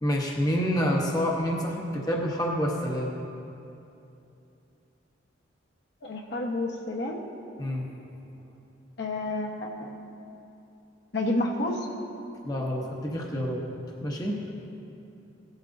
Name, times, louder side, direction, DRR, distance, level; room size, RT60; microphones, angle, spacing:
voice 1, 0.0-3.2 7.6-7.9 12.4-13.6 14.0-14.4, equal, 20° left, -1 dB, 0.9 m, -28 dB
voice 2, 6.0-7.2 9.0-10.0 11.1-11.9, left 2 dB, 60° left, 0 dB, 1.1 m, -30 dB
17.5 x 12.0 x 2.6 m, 2.8 s
head